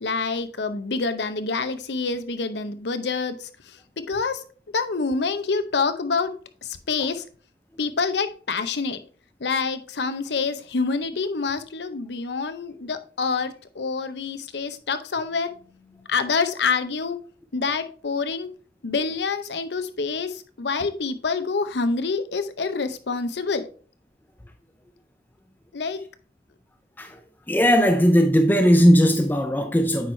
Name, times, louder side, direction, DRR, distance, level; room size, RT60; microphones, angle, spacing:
voice 1, 0.0-3.5 4.1-4.4 4.7-6.3 6.6-7.2 7.8-9.0 9.4-15.6 16.1-17.2 17.5-18.5 18.8-23.7 25.7-26.0, left 4 dB, 75° left, 0.7 m, -26 dB
voice 2, 27.5-30.1, equal, 10° left, 0.4 m, -18 dB
8.8 x 4.6 x 3.2 m
head